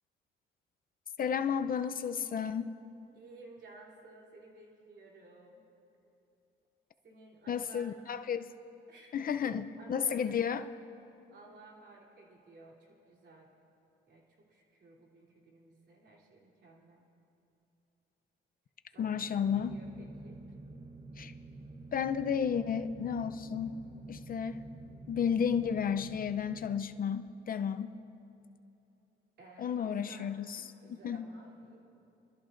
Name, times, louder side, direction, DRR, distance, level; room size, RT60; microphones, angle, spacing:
voice 1, 1.2-2.7 7.5-8.5 9.1-10.7 19.0-19.8 21.2-21.3 21.9-23.8 24.1-24.6 25.1-27.9 29.6-31.3, left 7 dB, 45° left, 10 dB, 0.5 m, -32 dB
voice 2, 3.1-5.6 7.0-8.0 8.9-10.4 11.3-13.5 14.1-17.0 18.9-20.4 29.4-31.8, right 2 dB, 60° right, -2 dB, 3.1 m, -55 dB
sound 1, 19.0-27.4, right 3 dB, 30° right, 0.8 m, -49 dB
25.5 x 13.5 x 2.6 m, 2.9 s
cardioid pair, 90°, 20 cm